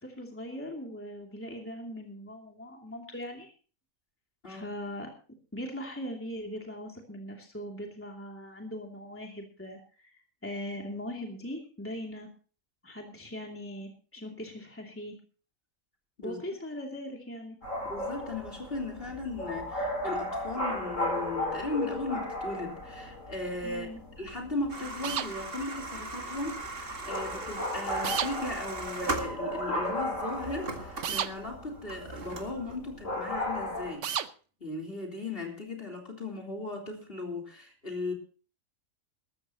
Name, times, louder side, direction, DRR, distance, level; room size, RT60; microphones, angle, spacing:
voice 1, 0.0-3.5 4.5-5.1 5.5-10.1 10.4-12.3 12.8-15.2 16.2-17.6 23.6-24.0, equal, 10° left, 0 dB, 2.8 m, -40 dB
sound 1, 17.6-33.9, left 1 dB, 65° left, 7.7 m, -36 dB
voice 2, 17.9-23.9 24.2-34.1 34.6-38.1, left 2 dB, 45° left, 3 dB, 3.9 m, -37 dB
sound 2, 24.7-29.8 30.2-32.8, right 2 dB, 45° right, 2.2 m, -39 dB
sound 3, 25.0-25.3 28.0-28.3 31.0-31.3 34.0-34.3, right 9 dB, 65° right, 1.1 m, -31 dB
20.0 x 14.0 x 3.0 m, 0.38 s
omnidirectional pair, 1.4 m